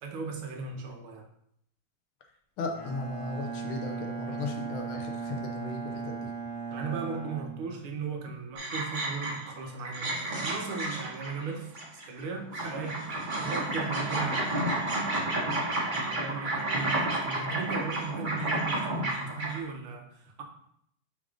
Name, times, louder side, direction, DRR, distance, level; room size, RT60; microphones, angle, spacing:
voice 1, 0.0-1.3 6.7-14.7 15.2-20.4, right 5 dB, 80° right, 3 dB, 1.8 m, -37 dB
voice 2, 2.6-6.3, left 3 dB, 80° left, 3 dB, 1.7 m, -36 dB
Bowed string instrument, 2.7-8.2, right 5 dB, 30° left, 0.6 m, -37 dB
sound 1, 8.6-9.5 9.8-12.2 12.5-19.6, right 2 dB, 35° right, 0.8 m, -31 dB
5.2 x 3.6 x 4.9 m, 0.72 s
omnidirectional pair, 2.3 m